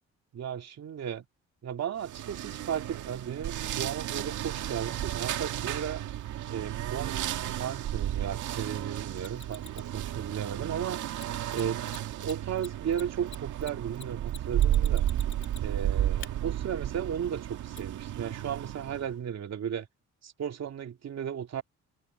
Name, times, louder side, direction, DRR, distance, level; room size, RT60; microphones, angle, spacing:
voice 1, 0.3-1.3 1.6-6.0 6.5-7.2 7.6-11.0 11.5-11.8 12.2-15.1 15.6-19.9 20.2-21.6, right 8 dB, 60° right, 2.8 m, -35 dB
sound 1, 2.0-19.1, right 12 dB, 80° right, 2.0 m, -33 dB
Mechanisms, 9.2-9.9 11.1-11.2 11.5-11.6 11.9-12.0 12.2-15.8 16.2-16.3 17.8-17.9, left 6 dB, 40° left, 3.2 m, -46 dB
cardioid pair, 90°, 30 cm